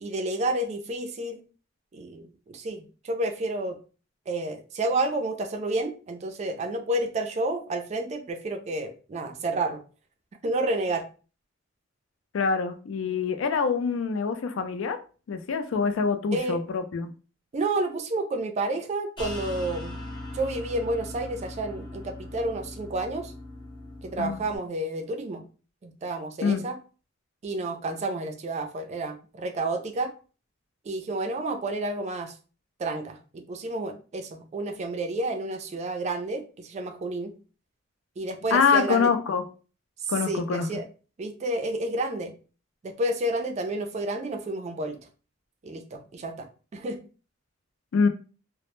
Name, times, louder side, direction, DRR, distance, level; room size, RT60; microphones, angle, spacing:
voice 1, 0.0-1.4 1.9-3.8 4.3-9.8 10.4-11.0 16.3-16.6 17.5-20.0 20.3-23.3 24.0-25.4 25.8-26.8 27.4-30.1 30.8-32.3 32.8-37.3 38.2-39.1 40.0-40.8 41.2-42.3 42.8-45.0 45.6-46.5 46.7-47.0, right 2 dB, 35° right, 0.3 m, -30 dB
voice 2, 12.3-15.0 15.3-17.1 24.2-24.4 26.4-26.6 38.5-39.4 40.1-40.7 47.9-48.1, left 5 dB, 85° left, 0.4 m, -25 dB
sound 1, 19.2-24.6, left 1 dB, 25° left, 0.5 m, -39 dB
2.0 x 2.0 x 3.0 m
head